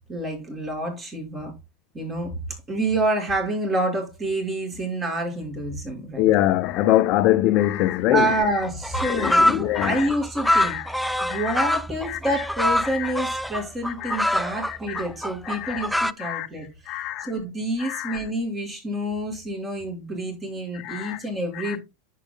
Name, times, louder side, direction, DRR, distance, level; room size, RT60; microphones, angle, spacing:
voice 1, 0.1-1.5 1.9-2.3 2.7-6.3 8.1-10.8 11.2-21.8, right 1 dB, 25° right, 5.6 m, -28 dB
voice 2, 6.2-8.5 9.0-10.1 10.4-10.9 11.3-11.7 12.1-12.5 12.8-13.2 14.0-14.3 14.7-15.1 15.4-15.9 16.2-16.5 16.9-17.3 17.8-18.2 20.7-21.2 21.5-21.8, left 14 dB, 50° left, 0.6 m, -24 dB
sound 1, 8.3-8.4 8.6-16.1, left 1 dB, ahead, 0.5 m, -25 dB
10.5 x 8.3 x 2.3 m
figure-of-eight pair, 85°, 0 cm